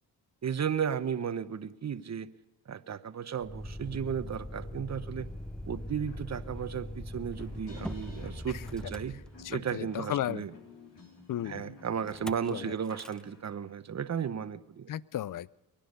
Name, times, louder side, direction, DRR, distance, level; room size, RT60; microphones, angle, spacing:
voice 1, 0.4-2.3 2.7-5.3 5.7-9.2 9.5-10.5 11.4-14.9, right 7 dB, 35° right, 13 dB, 1.0 m, -34 dB
Motor vehicle (road), 3.4-9.8 12.1-12.5 12.8-13.2, left 1 dB, ahead, 0.6 m, -41 dB
sound 1, 5.3-5.4 5.7-13.7, left 3 dB, 65° left, 3.8 m, -52 dB
voice 2, 9.4-10.4 11.3-11.7 12.5-12.7 14.9-15.6, left 12 dB, 45° left, 22 dB, 0.6 m, -34 dB
23.5 x 10.0 x 5.3 m, 1.1 s
supercardioid pair, 60°, 45 cm